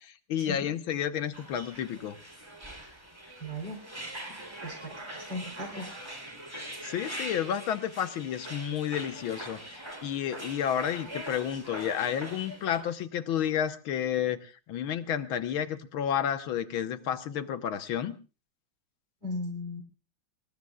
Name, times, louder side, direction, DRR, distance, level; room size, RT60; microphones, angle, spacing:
voice 1, 0.0-2.2 6.8-18.2, left 9 dB, 80° left, 10 dB, 1.9 m, -31 dB
sound 1, 1.3-12.8, right 1 dB, 10° right, 3.4 m, -42 dB
voice 2, 3.4-3.8 4.6-5.9 19.2-19.8, left 1 dB, 60° right, 6 dB, 4.1 m, -37 dB
27.0 x 19.5 x 2.4 m, 0.34 s
omnidirectional pair, 2.2 m